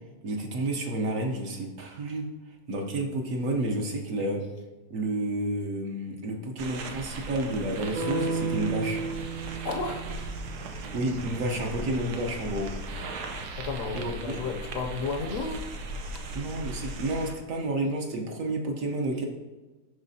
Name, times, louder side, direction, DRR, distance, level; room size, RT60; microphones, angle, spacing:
voice 1, 0.2-2.3 2.7-4.4 4.9-9.0 10.9-12.7 13.9-14.4 16.3-19.3, right 1 dB, 60° right, 1.2 m, -30 dB
sound 1, 6.6-17.3, right 2 dB, 85° right, 1.3 m, -38 dB
sound 2, 8.0-12.0, right 4 dB, 45° right, 0.7 m, -34 dB
voice 2, 9.6-10.1 13.6-15.7, left 4 dB, 65° left, 0.9 m, -32 dB
11.5 x 4.1 x 2.7 m
omnidirectional pair, 1.7 m